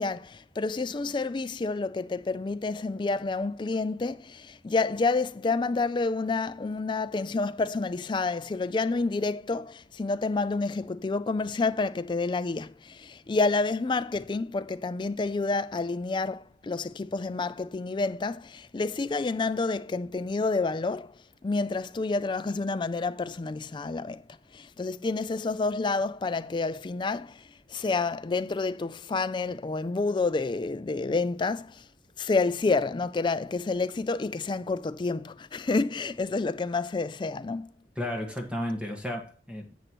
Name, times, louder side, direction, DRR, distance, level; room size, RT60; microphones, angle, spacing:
voice 1, 0.0-21.1 21.4-24.2 24.5-31.9 32.2-37.7, left 3 dB, 25° left, 0.3 m, -29 dB
voice 2, 37.9-39.8, left 1 dB, 5° right, 1.6 m, -33 dB
10.5 x 7.9 x 3.0 m
head